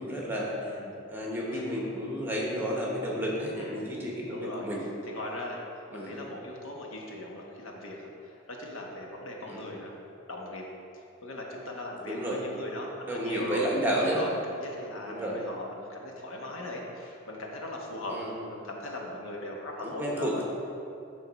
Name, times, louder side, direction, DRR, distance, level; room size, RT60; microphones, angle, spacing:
voice 1, 0.0-0.8 1.1-4.8 5.9-6.1 9.5-9.6 12.0-12.4 13.0-14.2 15.1-15.4 18.1-18.3 19.8-20.4, equal, 10° right, -4 dB, 1.1 m, -31 dB
voice 2, 0.6-0.9 1.5-1.6 3.5-3.9 4.3-4.7 5.1-5.6 5.9-9.9 10.3-10.6 10.9-13.6 14.0-18.2 18.5-20.4, left 1 dB, 80° left, -1 dB, 1.1 m, -39 dB
11.0 x 3.8 x 4.1 m, 2.7 s
head